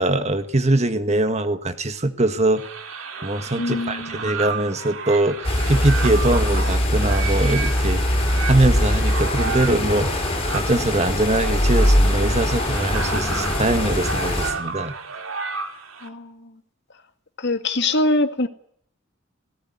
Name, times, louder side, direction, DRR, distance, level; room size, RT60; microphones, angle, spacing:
voice 1, 0.0-2.6 3.2-14.9, right 2 dB, 35° right, 1.7 m, -22 dB
sound 1, 2.6-16.1, right 5 dB, 85° right, 3.1 m, -32 dB
voice 2, 3.6-4.2 16.0-16.5 17.4-18.5, left 2 dB, 60° left, 2.1 m, -23 dB
sound 2, 5.4-14.5, left 1 dB, 30° left, 6.9 m, -21 dB
18.5 x 18.5 x 9.9 m
head